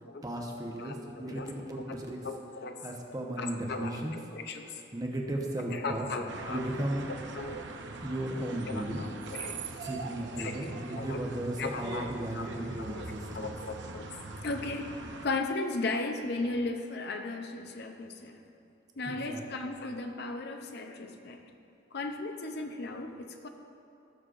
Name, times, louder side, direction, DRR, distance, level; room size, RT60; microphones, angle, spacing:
voice 1, 0.2-2.2 2.8-4.2 4.6-6.0 6.5-7.1 8.0-9.0 9.8-13.5 19.0-19.4, right 1 dB, 20° right, 0 dB, 0.9 m, -35 dB
voice 2, 0.8-1.5 2.2-2.7 3.4-4.7 5.7-6.6 7.4-7.6 8.7-9.6 10.4-11.2 11.6-12.1 12.3-12.5 12.8-12.9 13.3-14.1 14.4-14.9 15.2-18.4 19.0-21.4 21.9-23.5, left 3 dB, 60° left, 5 dB, 0.6 m, -36 dB
sound 1, 6.3-15.3, right 3 dB, 70° right, 0.7 m, -42 dB
17.5 x 6.4 x 2.5 m, 2.8 s
head